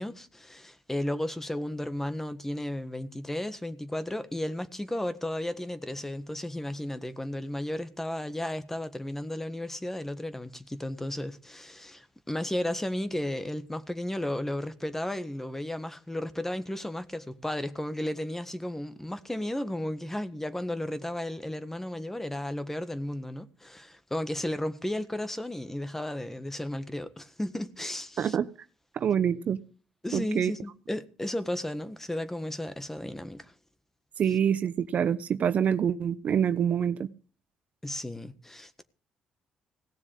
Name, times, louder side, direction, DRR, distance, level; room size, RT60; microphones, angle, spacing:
voice 1, 0.0-28.4 30.0-33.5 37.8-38.8, left 1 dB, 10° left, 1.5 m, -34 dB
voice 2, 28.2-28.5 28.9-29.6 30.1-30.5 34.2-37.1, right 8 dB, 60° right, 0.8 m, -26 dB
17.5 x 7.1 x 8.5 m
supercardioid pair, 60°, 3 cm